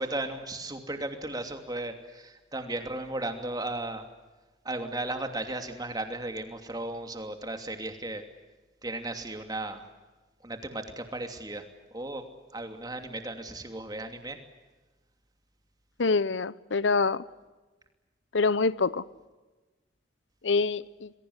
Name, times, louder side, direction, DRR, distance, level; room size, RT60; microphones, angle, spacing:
voice 1, 0.0-4.1 4.6-8.2 8.8-9.8 10.4-11.6 11.9-12.3 12.5-14.4, right 2 dB, 20° right, 2.8 m, -35 dB
voice 2, 16.0-17.2 18.3-19.0 20.4-21.1, left 4 dB, 85° left, 0.8 m, -25 dB
28.0 x 22.0 x 8.1 m
head